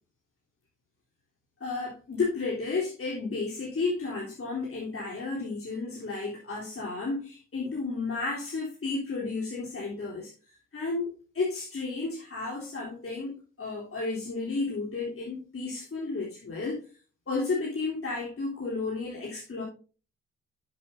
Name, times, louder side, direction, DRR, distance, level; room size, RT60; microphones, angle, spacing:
voice 1, 1.6-10.3 10.7-16.8 17.3-19.6, left 3 dB, 40° left, 3.6 m, -32 dB
10.5 x 8.7 x 2.7 m
hypercardioid pair, 50°, 35 cm